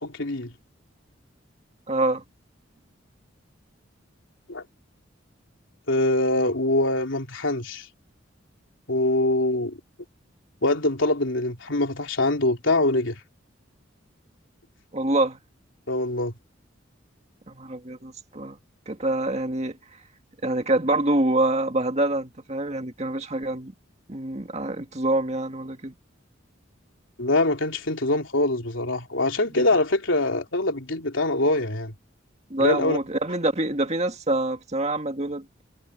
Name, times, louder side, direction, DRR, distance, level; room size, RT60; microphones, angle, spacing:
voice 1, 0.0-0.5 4.5-4.6 5.9-7.9 8.9-9.8 10.6-13.1 15.9-16.3 27.2-31.9 32.6-33.0, left 2 dB, 85° left, 3.3 m, -24 dB
voice 2, 1.9-2.2 14.9-15.4 17.5-18.6 18.9-19.8 20.4-23.7 24.1-25.9 29.5-29.6 32.5-35.5, right 2 dB, 35° right, 2.0 m, -26 dB
head